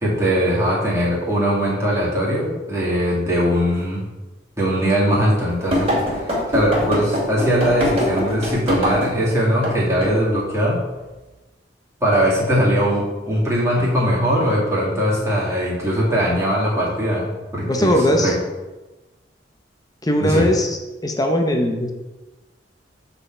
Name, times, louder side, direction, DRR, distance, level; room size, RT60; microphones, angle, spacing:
voice 1, 0.0-4.0 4.6-10.8 12.0-18.3 20.2-20.5, equal, 15° right, -7 dB, 2.2 m, -20 dB
sound 1, 5.7-9.2 9.6-9.7 10.0-10.2, equal, 35° right, 2.4 m, -22 dB
voice 2, 17.6-18.3 20.0-21.9, equal, 20° left, 3 dB, 0.8 m, -19 dB
7.7 x 4.2 x 4.4 m, 1.1 s
head